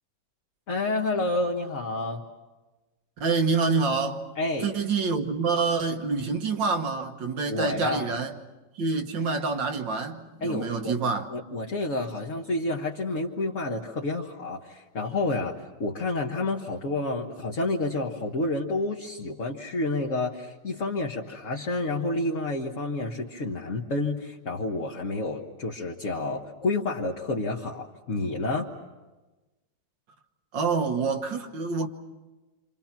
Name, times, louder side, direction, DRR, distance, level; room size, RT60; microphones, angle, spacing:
voice 1, 0.7-2.2 4.4-4.7 7.5-8.1 10.4-10.9 11.3-28.7, left 2 dB, 45° left, 1.7 m, -29 dB
voice 2, 3.2-4.3 4.6-8.4 8.8-11.3 30.5-31.9, right 4 dB, 85° right, 2.1 m, -27 dB
28.5 x 26.5 x 5.9 m
omnidirectional pair, 1.9 m